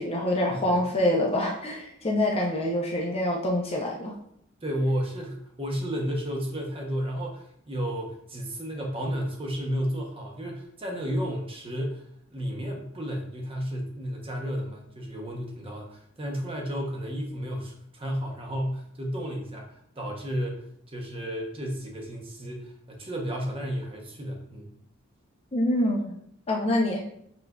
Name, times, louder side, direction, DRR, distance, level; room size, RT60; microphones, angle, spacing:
voice 1, 0.0-4.1 25.5-26.2 26.5-27.0, left 1 dB, 30° left, -1 dB, 0.6 m, -26 dB
voice 2, 4.6-12.0 12.3-24.7, equal, 25° right, 0 dB, 0.8 m, -32 dB
6.8 x 2.5 x 2.3 m, 0.71 s
head